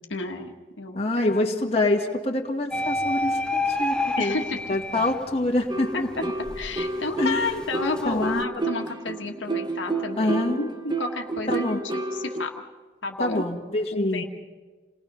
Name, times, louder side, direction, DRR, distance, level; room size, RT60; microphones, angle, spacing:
voice 1, 0.1-1.6 4.2-4.6 5.9-6.2 6.6-10.7 11.0-12.5 13.0-13.4 13.9-14.2, left 3 dB, 80° left, 3 dB, 1.7 m, -31 dB
voice 2, 1.0-4.4 4.7-6.1 7.2-7.5 8.0-8.5 10.2-10.6 11.5-11.8 13.2-14.2, left 2 dB, 30° left, 0 dB, 1.9 m, -25 dB
sound 1, 2.7-5.6 6.1-8.4, left 1 dB, 5° left, 0.7 m, -29 dB
sound 2, 5.7-12.5, right 2 dB, 25° right, 0.9 m, -30 dB
28.5 x 19.0 x 5.5 m, 1.4 s
head